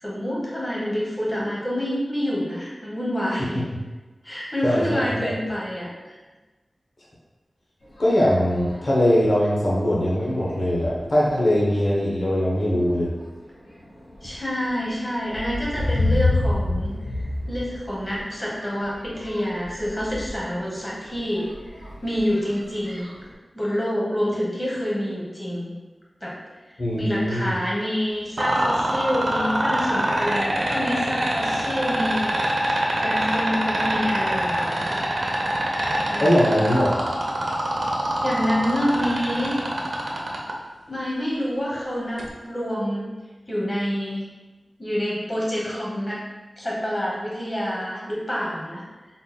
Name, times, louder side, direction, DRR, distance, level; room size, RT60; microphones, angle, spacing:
voice 1, 0.0-3.6 4.2-6.2 14.2-21.4 22.0-23.1 23.5-25.7 26.2-26.3 27.0-35.1 36.1-36.5 38.2-39.6 40.9-43.1 43.5-44.3 44.8-46.2 46.6-48.8, equal, 25° left, -5 dB, 1.0 m, -27 dB
voice 2, 4.6-5.3 8.0-13.1 26.8-27.5 36.2-37.0, equal, 60° left, -6 dB, 0.8 m, -21 dB
sound 1, 7.8-8.9 9.6-9.7 10.2-10.4 10.8-11.4 12.0-12.3 12.7-23.3, left 2 dB, 80° left, 1.2 m, -30 dB
sound 2, 28.4-40.5 42.2-42.3, right 1 dB, 70° right, 0.6 m, -24 dB
3.8 x 3.8 x 2.2 m, 1.2 s
wide cardioid pair, 95°, 0 cm